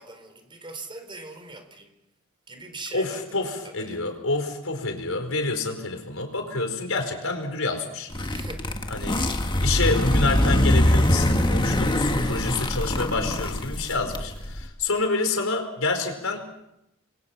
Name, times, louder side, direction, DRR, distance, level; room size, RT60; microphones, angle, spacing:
voice 1, 0.0-1.9 2.5-3.2 3.8-4.0 8.3-8.8 12.1-12.3, right 3 dB, 25° right, 7 dB, 4.2 m, -41 dB
voice 2, 2.9-8.1 8.9-9.2 9.6-16.5, left 3 dB, 80° left, 5 dB, 4.8 m, -28 dB
sound 1, 8.1-14.6, left 1 dB, 25° left, 1.7 m, -23 dB
28.5 x 23.0 x 5.9 m, 0.83 s
head